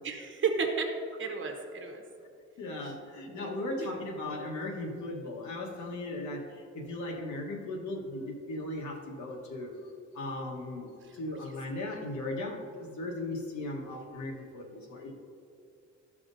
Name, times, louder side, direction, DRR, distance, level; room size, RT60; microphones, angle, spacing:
voice 1, 0.0-0.9 1.2-2.0 3.3-3.9 11.0-11.2, right 5 dB, 40° right, 3 dB, 1.1 m, -33 dB
voice 2, 2.6-9.8 10.1-15.1, left 2 dB, 70° left, 1 dB, 1.3 m, -37 dB
12.5 x 5.9 x 2.6 m, 2.5 s
cardioid pair, 90°, 30 cm